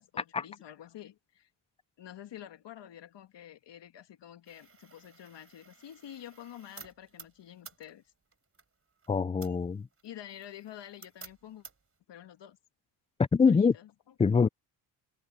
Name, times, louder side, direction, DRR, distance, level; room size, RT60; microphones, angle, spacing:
voice 1, 0.0-1.5 2.0-8.0 10.0-11.6 12.1-12.6 13.4-13.9, left 11 dB, 65° left, 2.0 m, -48 dB
sound 1, 4.4-12.0, right 5 dB, 30° right, 4.1 m, -54 dB
voice 2, 9.1-9.9 13.3-13.7 14.2-14.5, left 5 dB, 15° left, 0.3 m, -24 dB
cardioid pair, 95°, 46 cm